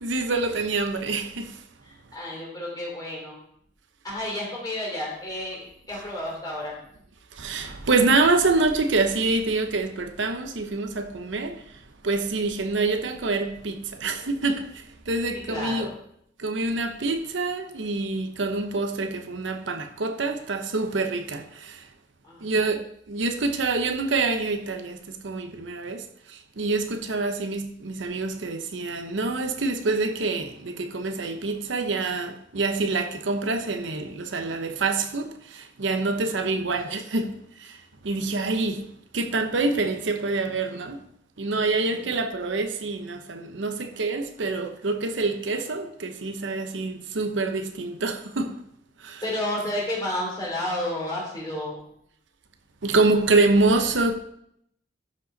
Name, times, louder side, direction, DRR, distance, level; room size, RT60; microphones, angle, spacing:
voice 1, 0.0-1.6 7.3-15.9 16.4-21.9 22.4-41.0 41.4-48.6 49.0-49.2 52.8-54.2, right 3 dB, 80° right, 0.8 m, -26 dB
voice 2, 1.8-3.4 4.0-6.7 15.5-15.9 22.2-22.5 36.2-36.4 41.9-42.1 49.2-51.8, left 1 dB, 20° left, 3.2 m, -31 dB
12.0 x 5.3 x 4.0 m
head